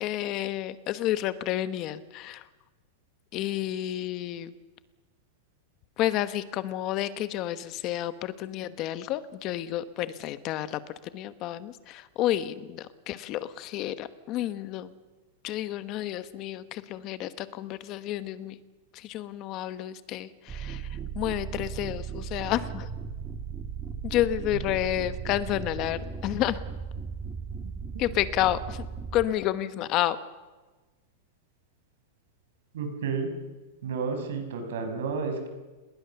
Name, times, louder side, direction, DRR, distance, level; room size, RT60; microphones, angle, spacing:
voice 1, 0.0-2.4 3.3-4.5 6.0-10.8 11.1-14.9 15.4-18.6 18.9-20.9 21.1-22.9 24.0-26.6 28.0-28.9 29.1-30.2, left 13 dB, 30° left, 13 dB, 1.1 m, -30 dB
sound 1, 20.5-29.3, right 6 dB, 15° right, 1.8 m, -37 dB
voice 2, 32.7-33.3 33.8-35.5, right 5 dB, 75° right, 6 dB, 5.6 m, -31 dB
28.5 x 20.0 x 7.0 m, 1.2 s
supercardioid pair, 175°, 0 cm